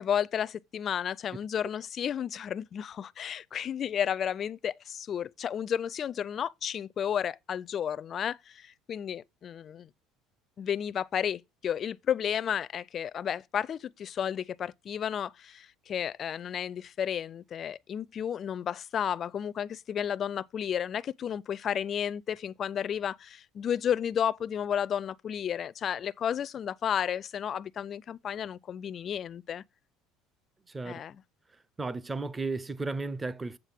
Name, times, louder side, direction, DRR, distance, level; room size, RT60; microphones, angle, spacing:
voice 1, 0.0-9.9 10.6-29.6 30.8-31.2, left 9 dB, 40° left, 0.4 m, -32 dB
voice 2, 30.7-31.0 31.8-33.6, right 3 dB, 15° right, 0.6 m, -34 dB
7.9 x 7.4 x 3.5 m
cardioid pair, 115°, 0 cm